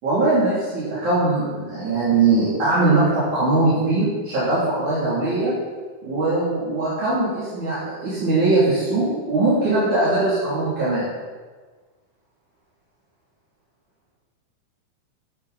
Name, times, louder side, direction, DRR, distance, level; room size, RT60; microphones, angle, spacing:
voice 1, 0.0-5.5 6.0-11.2, right 2 dB, 65° right, -11 dB, 4.6 m, -21 dB
14.0 x 9.6 x 4.3 m, 1.4 s
omnidirectional pair, 3.8 m